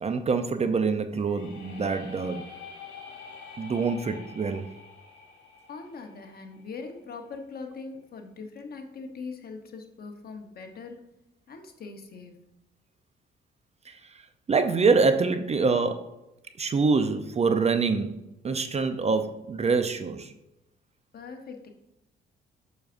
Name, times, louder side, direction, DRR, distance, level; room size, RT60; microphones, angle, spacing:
voice 1, 0.0-2.5 3.6-4.7 13.9-14.0 14.5-16.1 16.6-20.3, right 4 dB, 35° right, 9 dB, 0.5 m, -25 dB
sound 1, 1.1-7.0, left 5 dB, 70° left, 2.1 m, -46 dB
voice 2, 5.7-11.0 11.5-12.4 21.1-21.7, left 4 dB, 50° left, 4 dB, 1.1 m, -41 dB
7.2 x 6.2 x 2.6 m, 0.87 s
cardioid pair, 90°, 20 cm